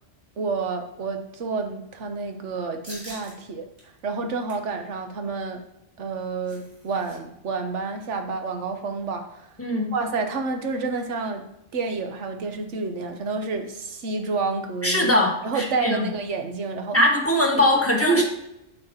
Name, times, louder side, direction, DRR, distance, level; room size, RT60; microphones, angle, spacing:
voice 1, 0.4-3.7 4.0-5.6 6.0-9.5 9.9-11.4 11.7-15.1 15.4-17.0 18.1-18.2, right 4 dB, 70° right, 5 dB, 1.2 m, -29 dB
sound 1, 2.8-3.3 3.8-3.9 4.3-4.7 6.0-7.2 7.4-7.6 7.9-8.2, equal, 45° right, 3.0 m, -44 dB
voice 2, 9.6-9.9 14.8-16.1 16.9-18.2, left 1 dB, 10° left, -2 dB, 1.3 m, -21 dB
8.7 x 5.6 x 2.8 m, 0.85 s
omnidirectional pair, 1.3 m